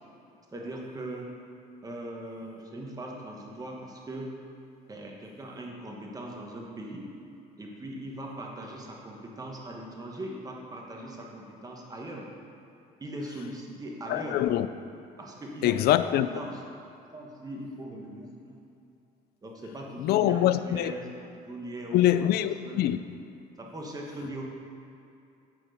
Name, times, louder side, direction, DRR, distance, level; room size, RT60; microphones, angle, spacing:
voice 1, 0.5-1.3 1.8-4.3 4.9-7.1 7.6-12.3 13.0-14.4 15.2-15.8 16.3-16.6 17.1-18.6 19.4-22.2 22.6-22.8 23.6-24.4, right 1 dB, 20° right, 1.3 m, -40 dB
voice 2, 14.1-14.7 15.6-16.3 20.0-20.9 21.9-23.2, left 12 dB, 70° left, 0.4 m, -24 dB
9.7 x 4.5 x 5.2 m
cardioid pair, 110°, 17 cm